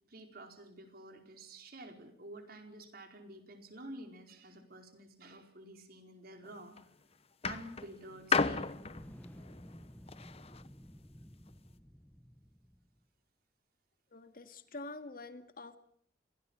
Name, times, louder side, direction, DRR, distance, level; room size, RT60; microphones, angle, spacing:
voice 1, 0.1-6.8 7.4-8.7, right 1 dB, 60° right, 5 dB, 4.8 m, -50 dB
sound 1, 6.4-6.8 7.4-10.7 11.5-11.6, left 5 dB, 35° left, 1.0 m, -34 dB
sound 2, 8.2-13.0, equal, 10° left, 1.3 m, -54 dB
voice 2, 14.1-15.8, left 2 dB, 55° left, 8 dB, 2.1 m, -46 dB
26.5 x 17.5 x 9.1 m, 0.66 s
head